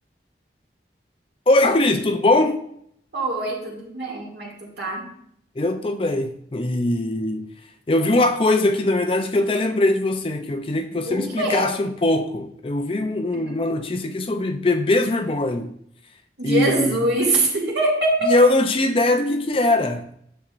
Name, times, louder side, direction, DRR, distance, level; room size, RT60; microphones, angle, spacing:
voice 1, 1.5-2.6 5.6-7.5 7.9-15.7 16.4-17.0 18.3-20.1, left 2 dB, 30° left, 0.5 m, -21 dB
voice 2, 3.1-5.1 11.1-11.7 13.3-13.5 16.4-18.3, right 2 dB, 75° right, 2.3 m, -23 dB
10.0 x 6.6 x 2.5 m
head